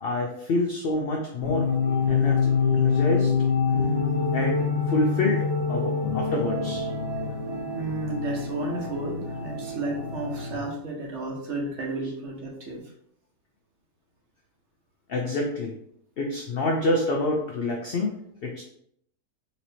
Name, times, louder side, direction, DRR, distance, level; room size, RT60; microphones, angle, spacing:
voice 1, 0.0-1.7 2.1-3.3 4.3-6.9 15.1-15.7 16.2-18.1 18.4-18.6, left 2 dB, 70° left, 0 dB, 0.5 m, -27 dB
sound 1, 1.4-10.6, left 5 dB, 25° right, 0.6 m, -26 dB
voice 2, 7.7-12.8, right 2 dB, 55° right, 0 dB, 1.0 m, -32 dB
4.1 x 2.9 x 2.7 m, 0.70 s
omnidirectional pair, 1.6 m